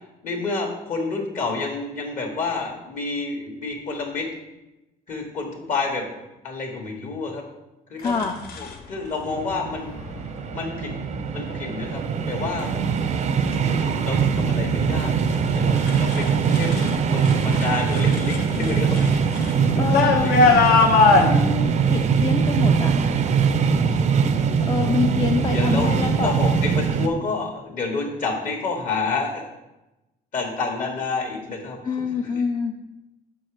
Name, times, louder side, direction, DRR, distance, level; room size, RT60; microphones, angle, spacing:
voice 1, 0.2-4.3 5.1-6.1 6.4-7.4 7.9-8.3 8.6-9.9 10.5-10.9 11.3-12.8 13.5-20.7 21.1-21.4 23.9-24.5 25.5-29.6 30.3-31.8 32.3-32.4, left 4 dB, 50° left, 1 dB, 1.3 m, -29 dB
sound 1, 8.0-8.7 9.9-10.2 10.8-11.2 11.8-12.3 12.6-16.9 17.2-21.3, left 4 dB, 70° left, 1.0 m, -23 dB
voice 2, 8.0-8.4 19.7-20.5 21.2-23.0 24.6-26.3 31.8-32.8, left 5 dB, 25° left, 2 dB, 0.4 m, -26 dB
sound 2, 9.3-27.1, right 6 dB, 45° right, 0.5 m, -22 dB
5.8 x 4.6 x 4.8 m, 0.98 s
cardioid pair, 110°, 17 cm